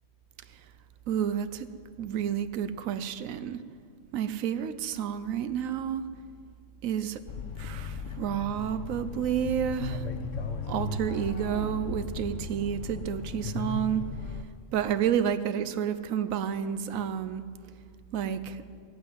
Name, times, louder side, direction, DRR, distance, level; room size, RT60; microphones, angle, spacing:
voice 1, 1.1-1.7 2.0-3.6 4.1-6.1 6.8-7.2 7.6-10.1 10.7-14.0 14.7-17.4 18.1-18.6, right 9 dB, 80° right, 12 dB, 1.2 m, -30 dB
sound 1, 7.3-14.4, left 4 dB, 70° left, 1.4 m, -36 dB
16.5 x 8.7 x 9.4 m, 2.2 s
omnidirectional pair, 1.4 m